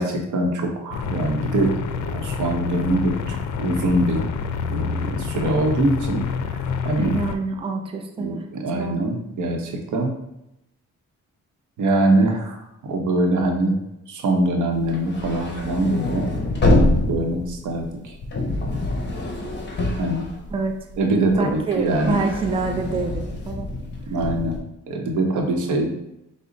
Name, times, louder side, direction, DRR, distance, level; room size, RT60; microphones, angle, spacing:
voice 1, 0.0-1.7 2.1-4.2 4.7-6.6 6.8-7.2 8.2-10.1 11.8-13.8 14.1-16.3 17.1-18.1 20.0-20.3 21.0-22.2 24.1-24.6 24.9-25.9, right 1 dB, 85° right, 2 dB, 0.8 m, -23 dB
sound 1, 0.9-7.4, left 5 dB, 75° left, 0.5 m, -27 dB
voice 2, 7.0-8.4 8.7-9.1 20.5-20.8 21.4-23.7, right 4 dB, 20° right, 3 dB, 0.4 m, -26 dB
sound 2, 14.8-20.9 21.3-24.6, left 2 dB, 35° left, 0.9 m, -25 dB
5.1 x 2.0 x 3.8 m, 0.85 s
cardioid pair, 125°, 30 cm